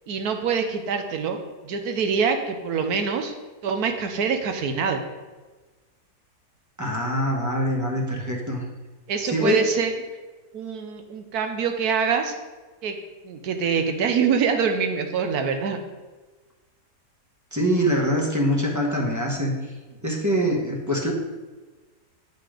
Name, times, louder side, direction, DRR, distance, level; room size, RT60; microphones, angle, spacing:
voice 1, 0.1-3.3 3.6-5.0 9.1-9.9 10.5-12.3 12.8-12.9 13.2-15.8, right 6 dB, 70° right, 6 dB, 1.2 m, -25 dB
voice 2, 6.8-8.6 9.2-9.6 17.5-19.5 20.0-21.1, equal, 15° right, -1 dB, 0.7 m, -24 dB
8.4 x 4.1 x 4.9 m, 1.3 s
omnidirectional pair, 1.8 m